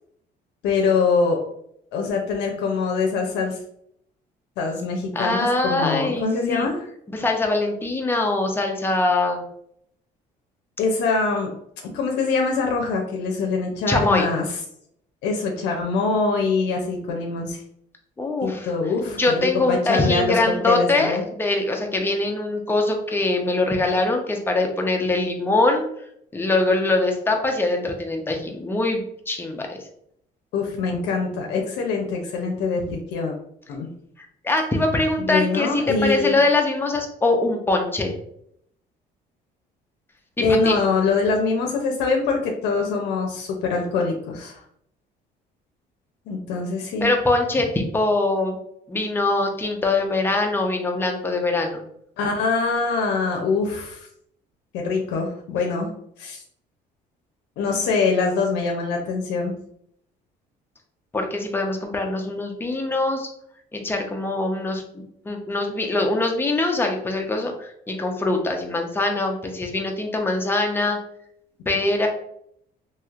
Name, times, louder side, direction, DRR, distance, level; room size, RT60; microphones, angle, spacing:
voice 1, 0.6-1.4 1.9-3.6 4.6-6.8 10.8-11.5 11.8-14.4 15.2-17.6 18.4-20.4 20.7-21.2 30.5-33.3 33.7-33.9 35.2-36.4 40.4-44.6 46.3-47.1 52.2-54.1 54.7-55.9 56.2-56.4 57.6-59.5, left 4 dB, 85° left, 1 dB, 0.6 m, -24 dB
voice 2, 5.1-6.7 7.1-9.4 13.9-14.3 18.2-18.7 19.1-25.8 26.3-29.8 34.2-38.1 40.4-40.8 47.0-48.6 48.9-51.8 61.1-63.3 63.7-71.0 71.7-72.1, left 2 dB, 15° left, 2 dB, 0.6 m, -23 dB
3.1 x 2.8 x 2.4 m, 0.70 s
cardioid pair, 110°, 17 cm